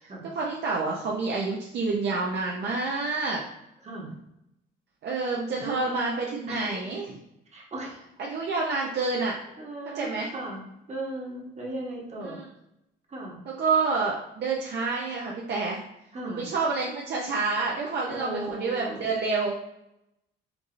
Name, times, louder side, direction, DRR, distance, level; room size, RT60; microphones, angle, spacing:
voice 1, 0.3-3.4 5.0-7.1 8.2-9.3 9.9-10.3 12.2-12.4 13.6-15.8 16.2-19.5, right 4 dB, 60° right, -3 dB, 0.6 m, -28 dB
voice 2, 5.5-5.9 6.5-6.7 7.5-8.0 8.6-8.9 9.6-10.6 10.9-12.4 13.1-13.4 16.1-16.4 18.1-19.1, right 2 dB, 35° right, -2 dB, 1.1 m, -37 dB
4.6 x 2.6 x 2.5 m, 0.85 s
cardioid pair, 90°, 20 cm